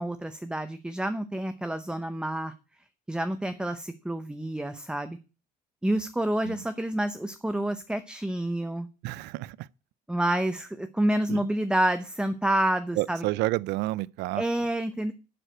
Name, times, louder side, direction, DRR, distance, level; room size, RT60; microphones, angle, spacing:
voice 1, 0.0-2.5 3.1-5.2 5.8-8.9 10.1-13.2 14.4-15.1, right 1 dB, 5° right, 0.7 m, -28 dB
voice 2, 9.0-9.7 11.3-11.5 13.0-14.4, right 19 dB, 85° right, 0.4 m, -30 dB
11.0 x 4.8 x 7.8 m
cardioid pair, 110°, 17 cm